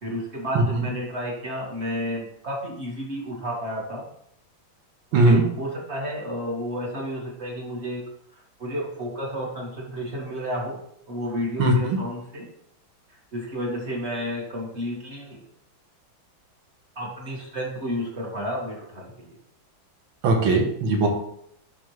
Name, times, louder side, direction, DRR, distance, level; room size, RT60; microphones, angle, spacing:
voice 1, 0.0-4.0 5.1-8.0 8.6-10.8 11.1-12.5 13.1-15.4 17.0-19.3, equal, 35° right, -4 dB, 2.0 m, -31 dB
voice 2, 5.1-5.4 11.6-12.0 20.2-21.1, right 2 dB, 80° right, 2 dB, 2.0 m, -19 dB
10.5 x 3.7 x 3.2 m, 0.70 s
omnidirectional pair, 2.2 m